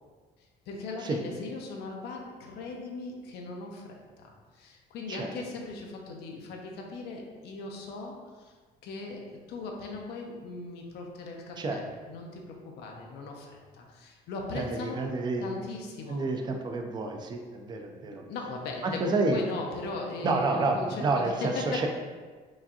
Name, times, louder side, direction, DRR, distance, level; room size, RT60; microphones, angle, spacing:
voice 1, 0.7-8.5 8.8-15.0 15.4-16.2 18.1-21.9, left 3 dB, 80° left, 0 dB, 0.6 m, -39 dB
voice 2, 14.5-15.4 16.1-18.2 18.8-19.4 20.2-21.9, right 3 dB, 25° right, 3 dB, 0.4 m, -29 dB
4.7 x 2.5 x 2.7 m, 1.5 s
cardioid pair, 110°, 17 cm